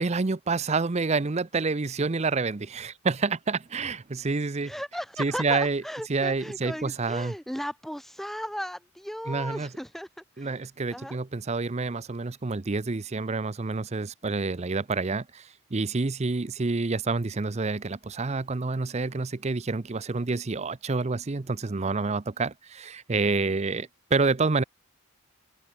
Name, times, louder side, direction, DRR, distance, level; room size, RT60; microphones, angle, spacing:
voice 1, 0.0-4.7 5.2-5.8 6.1-7.3 9.3-9.7 10.4-24.6, right 3 dB, 30° right, 0.6 m, -28 dB
voice 2, 4.6-11.2, equal, ahead, 1.5 m, -36 dB
head